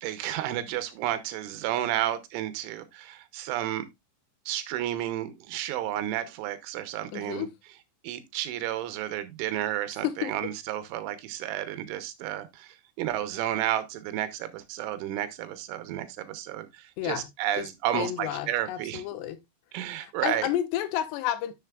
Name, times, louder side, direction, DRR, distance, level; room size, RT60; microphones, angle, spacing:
voice 1, 0.0-3.9 4.5-7.5 8.0-19.0 19.7-20.5, right 12 dB, 80° right, 3.4 m, -32 dB
voice 2, 7.1-7.5 10.0-10.3 17.0-17.3 17.6-17.7 17.9-19.4 19.9-21.5, left 11 dB, 75° left, 2.6 m, -31 dB
11.0 x 6.7 x 2.4 m
omnidirectional pair, 5.5 m